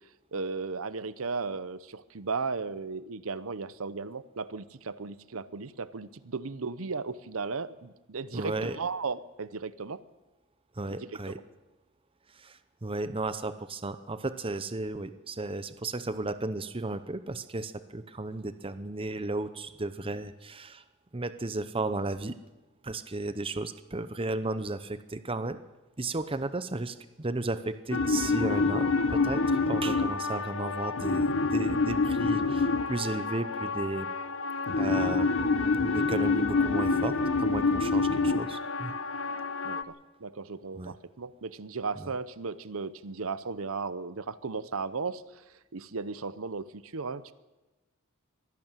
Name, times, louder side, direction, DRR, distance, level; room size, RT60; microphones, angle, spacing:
voice 1, 0.3-10.0 11.0-11.3 39.6-39.9 40.2-45.4 45.7-47.3, right 4 dB, 75° right, 15 dB, 0.8 m, -35 dB
voice 2, 8.3-8.8 10.7-11.4 12.3-20.8 21.1-22.4 22.8-25.6 26.0-34.1 34.8-35.4 35.8-38.9 40.8-40.9 42.0-42.1, right 2 dB, 25° right, 12 dB, 0.8 m, -34 dB
sound 1, 27.9-39.8, left 3 dB, 65° left, 1.0 m, -27 dB
23.5 x 12.0 x 9.0 m, 1.1 s
head